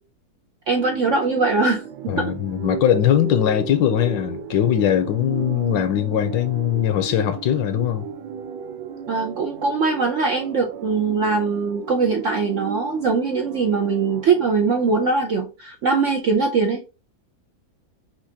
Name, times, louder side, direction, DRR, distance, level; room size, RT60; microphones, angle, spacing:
voice 1, 0.7-2.3 9.1-16.8, right 4 dB, 65° right, 0.7 m, -21 dB
sound 1, 0.7-15.1, right 7 dB, 80° right, 1.3 m, -34 dB
voice 2, 2.1-8.1, left 11 dB, 75° left, 1.3 m, -21 dB
5.9 x 2.6 x 2.7 m
omnidirectional pair, 2.1 m